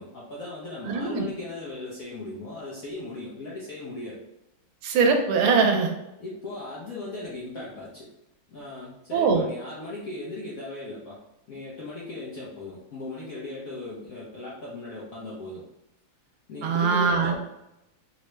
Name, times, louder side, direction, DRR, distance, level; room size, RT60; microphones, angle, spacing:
voice 1, 0.0-4.2 6.2-8.1 8.5-11.2 11.5-15.6 16.5-17.4, left 2 dB, 65° left, -7 dB, 0.8 m, -37 dB
voice 2, 0.8-1.2 4.8-5.9 9.1-9.4 16.6-17.4, right 5 dB, 85° right, 3 dB, 1.5 m, -22 dB
3.7 x 2.1 x 3.0 m, 0.90 s
omnidirectional pair, 2.3 m